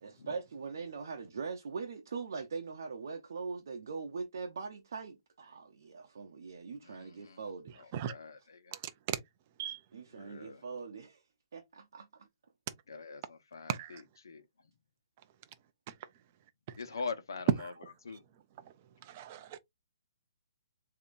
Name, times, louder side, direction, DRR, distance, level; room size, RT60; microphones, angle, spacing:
voice 1, 0.0-7.9 9.9-11.2 11.5-12.3, right 5 dB, 45° right, 0.8 m, -42 dB
voice 2, 6.8-7.4 7.8-8.8 10.2-10.6 12.9-14.4 16.8-17.7 18.0-18.2, left 4 dB, 65° left, 1.1 m, -43 dB
voice 3, 13.7-14.0 19.0-19.6, right 10 dB, 20° right, 0.4 m, -37 dB
6.9 x 2.9 x 2.5 m
hypercardioid pair, 180°, 2 cm